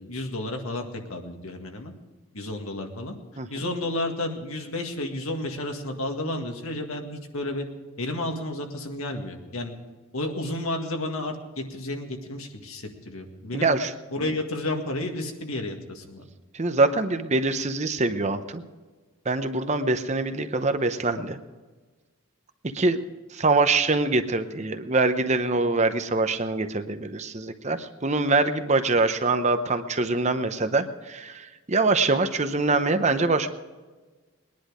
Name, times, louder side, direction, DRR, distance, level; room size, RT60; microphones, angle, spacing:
voice 1, 0.0-1.9 2.3-3.2 3.5-7.7 8.0-9.8 10.1-13.7 14.1-16.2, left 1 dB, 80° left, 3 dB, 1.8 m, -31 dB
voice 2, 13.5-13.9 14.2-14.3 16.5-18.6 19.3-21.4 22.6-23.0 23.3-33.5, right 3 dB, 30° right, 9 dB, 0.7 m, -24 dB
20.5 x 10.5 x 5.0 m, 1.3 s
head